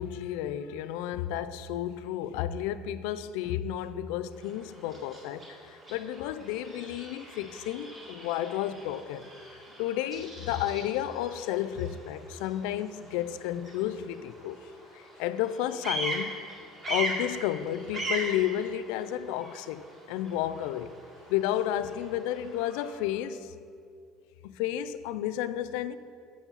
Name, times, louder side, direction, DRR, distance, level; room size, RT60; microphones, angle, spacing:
voice 1, 0.0-9.3 9.8-14.7 14.9-16.3 16.9-20.9 21.3-23.5 24.4-26.0, left 11 dB, 85° left, 0.3 m, -32 dB
Bird vocalization bird call bird song, 4.3-23.0, right 2 dB, 25° right, 2.1 m, -41 dB
7.2 x 7.1 x 5.4 m
cardioid pair, 155°, 0 cm